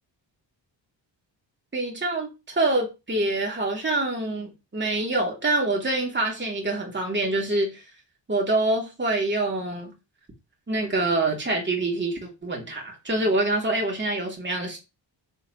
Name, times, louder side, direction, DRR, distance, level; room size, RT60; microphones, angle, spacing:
voice 1, 1.7-7.8 8.3-9.9 10.7-14.8, right 2 dB, 25° right, 3.1 m, -26 dB
7.7 x 7.3 x 3.2 m
wide cardioid pair, 125°, 46 cm